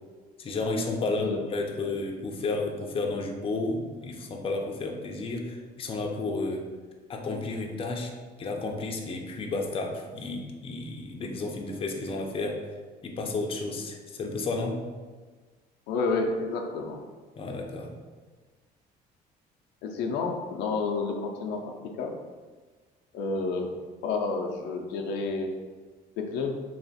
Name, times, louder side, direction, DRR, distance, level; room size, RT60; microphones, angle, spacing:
voice 1, 0.4-6.7 7.1-8.1 8.4-12.6 13.0-14.8 17.4-17.9, left 3 dB, 35° left, 2 dB, 0.5 m, -32 dB
voice 2, 15.9-17.1 19.8-22.2 23.1-23.7 24.0-25.5 26.2-26.6, left 4 dB, 90° left, 2 dB, 0.5 m, -30 dB
3.3 x 2.4 x 4.0 m, 1.4 s
cardioid pair, 110°, 17 cm